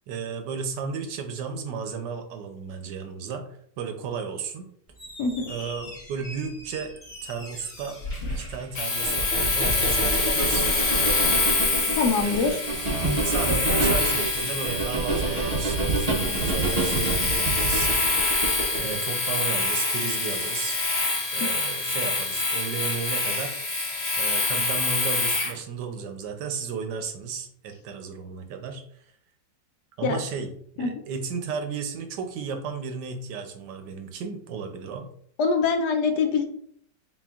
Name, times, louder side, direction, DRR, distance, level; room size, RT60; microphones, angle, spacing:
voice 1, 0.1-4.7 5.5-6.9 7.2-8.0 8.3-10.7 12.2-12.6 13.2-18.3 18.7-20.8 21.3-23.6 24.2-28.8 30.0-35.1, right 6 dB, 75° right, 6 dB, 1.2 m, -34 dB
Squeak, 4.9-9.5, left 1 dB, 35° left, 1.4 m, -39 dB
voice 2, 5.2-5.5 12.0-12.6 30.0-30.2 30.8-30.9 35.4-36.4, left 5 dB, 75° left, 5 dB, 1.1 m, -23 dB
Domestic sounds home sounds, 8.7-25.6, left 3 dB, 50° left, 0.8 m, -26 dB
sound 1, 9.0-19.0, right 3 dB, 55° right, 0.4 m, -28 dB
4.3 x 3.8 x 2.4 m, 0.65 s
omnidirectional pair, 1.9 m